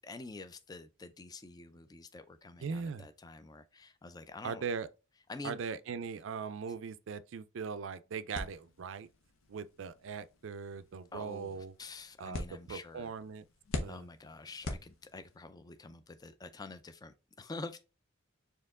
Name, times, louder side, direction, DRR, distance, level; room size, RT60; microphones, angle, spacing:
voice 1, 0.0-4.6 5.3-5.6 11.1-13.1 13.8-17.8, left 3 dB, 20° left, 0.3 m, -47 dB
voice 2, 2.6-3.1 4.4-4.9 5.4-9.1 9.5-11.7 12.2-13.4 13.8-14.1, right 5 dB, 65° right, 0.4 m, -40 dB
sound 1, 8.3-15.5, left 2 dB, 80° left, 0.8 m, -45 dB
4.5 x 2.8 x 3.6 m
head